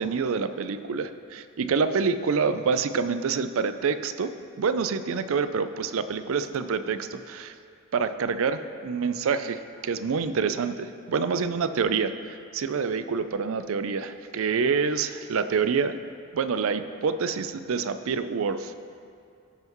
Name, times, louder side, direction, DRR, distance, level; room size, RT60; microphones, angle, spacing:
voice 1, 0.0-7.5 7.9-16.0 16.3-18.9, right 5 dB, 65° right, 11 dB, 0.4 m, -27 dB
16.0 x 5.6 x 3.0 m, 2.5 s
head